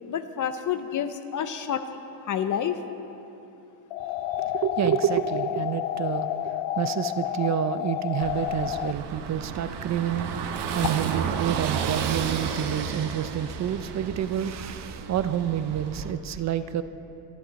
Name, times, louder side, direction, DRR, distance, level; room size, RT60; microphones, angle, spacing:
voice 1, 0.1-2.0 2.3-2.8, left 8 dB, 40° left, 9 dB, 0.7 m, -29 dB
sound 1, 3.9-8.9, left 12 dB, 85° left, 0.6 m, -30 dB
voice 2, 4.3-16.8, right 10 dB, 35° right, 12 dB, 0.5 m, -28 dB
Car passing by / Engine, 8.2-16.1, right 7 dB, 55° right, 1.2 m, -32 dB
26.5 x 10.5 x 4.1 m, 2.9 s
cardioid pair, 145°, 48 cm